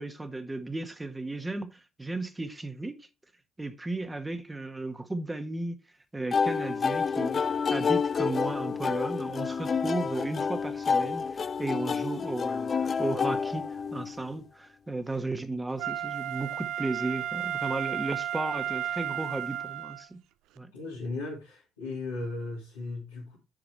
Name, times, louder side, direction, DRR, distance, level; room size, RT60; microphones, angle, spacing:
voice 1, 0.0-3.1 3.6-5.8 6.1-7.4 7.7-20.2 20.6-20.7, right 2 dB, 15° right, 1.6 m, -34 dB
sound 1, 6.3-14.2, left 5 dB, 40° left, 0.4 m, -29 dB
Wind instrument woodwind instrument, 15.8-20.1 20.6-20.7, right 11 dB, 70° right, 0.4 m, -33 dB
voice 2, 20.7-23.4, left 3 dB, 90° left, 2.7 m, -36 dB
9.0 x 4.8 x 4.4 m
hypercardioid pair, 50°, 0 cm